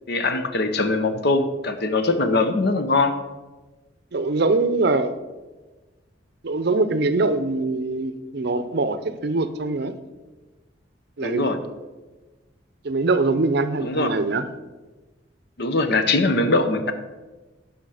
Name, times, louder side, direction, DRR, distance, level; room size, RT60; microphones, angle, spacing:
voice 1, 0.1-3.1 11.2-11.6 13.8-14.1 15.6-16.9, left 3 dB, 55° left, 9 dB, 0.8 m, -21 dB
voice 2, 4.1-5.1 6.4-9.9 11.2-11.6 12.8-14.5, right 3 dB, 55° right, 11 dB, 0.6 m, -23 dB
9.9 x 5.8 x 4.9 m, 1.2 s
head